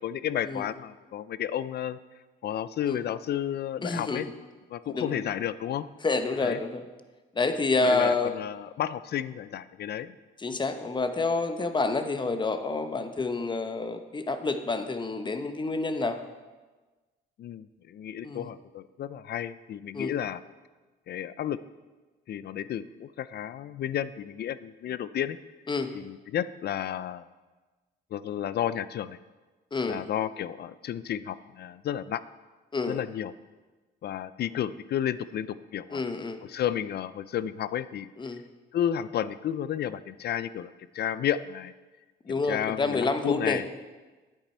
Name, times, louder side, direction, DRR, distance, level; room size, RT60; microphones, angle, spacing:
voice 1, 0.0-2.0 2.4-4.3 4.7-5.9 6.4-6.6 7.8-10.1 17.4-20.4 21.1-21.6 22.3-25.4 25.9-27.2 28.1-29.2 29.9-32.2 32.9-33.3 34.0-36.0 36.5-38.1 38.7-41.7 42.3-43.6, left 10 dB, 55° left, 16 dB, 0.4 m, -32 dB
voice 2, 3.8-4.2 4.9-5.2 6.0-6.8 7.3-8.3 10.4-16.2 18.2-18.5 19.9-20.1 25.7-25.9 29.7-30.0 32.7-33.0 35.9-36.5 38.2-38.4 42.2-43.6, left 3 dB, 25° left, 8 dB, 0.9 m, -28 dB
10.0 x 8.9 x 4.3 m, 1.3 s
cardioid pair, 90°, 20 cm